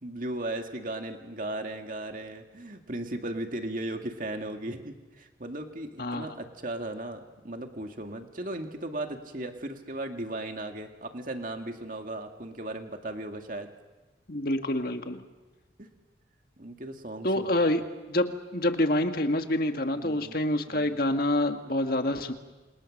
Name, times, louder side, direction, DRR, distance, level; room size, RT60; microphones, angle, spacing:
voice 1, 0.0-13.7 15.8-15.9 16.6-17.5 19.9-20.4 20.7-21.0, right 1 dB, 45° right, 4 dB, 2.3 m, -36 dB
voice 2, 14.3-15.2 17.2-17.8 18.1-22.3, left 1 dB, 50° left, 6 dB, 1.8 m, -27 dB
28.5 x 27.0 x 6.6 m, 1.2 s
head